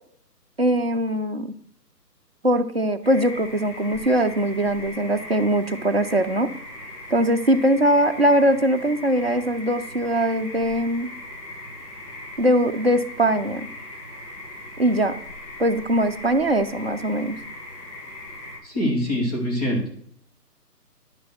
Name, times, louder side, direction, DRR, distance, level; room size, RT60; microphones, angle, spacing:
voice 1, 0.6-1.5 2.4-6.5 7.1-11.1 12.4-13.7 14.8-15.2 15.6-17.4, right 1 dB, 40° right, 5 dB, 0.7 m, -21 dB
sound 1, 3.0-18.6, left 1 dB, 45° left, 4.2 m, -39 dB
voice 2, 18.6-19.9, equal, 25° left, -3 dB, 2.6 m, -24 dB
10.5 x 6.2 x 6.0 m, 0.64 s
hypercardioid pair, 175°, 49 cm